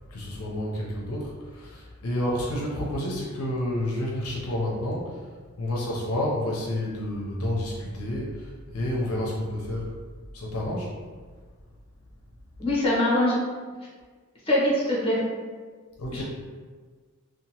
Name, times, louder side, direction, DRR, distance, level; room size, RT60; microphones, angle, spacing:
voice 1, 0.1-9.9 10.3-10.9 16.0-16.2, left 1 dB, 75° left, -3 dB, 0.5 m, -30 dB
voice 2, 12.6-13.4 14.5-15.2 16.1-16.2, left 1 dB, 25° left, -6 dB, 0.8 m, -23 dB
2.8 x 2.2 x 2.8 m, 1.5 s
head